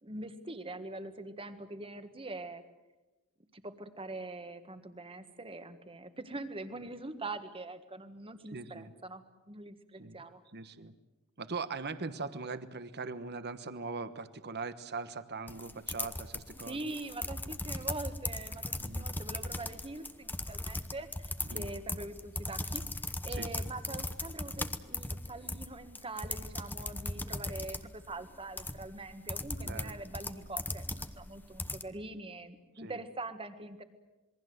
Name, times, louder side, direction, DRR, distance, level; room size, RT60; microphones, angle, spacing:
voice 1, 0.0-2.6 3.5-10.4 16.6-33.8, right 2 dB, 25° right, 10 dB, 1.6 m, -43 dB
voice 2, 8.5-8.9 10.0-10.2 10.5-10.9 11.4-16.8 18.8-19.0 21.5-21.7 23.4-23.5 29.6-30.0 32.8-32.9, right 4 dB, 50° right, 12 dB, 1.2 m, -40 dB
sound 1, 15.5-31.8, left 2 dB, 10° left, 0.9 m, -38 dB
27.5 x 22.0 x 7.9 m, 1.1 s
head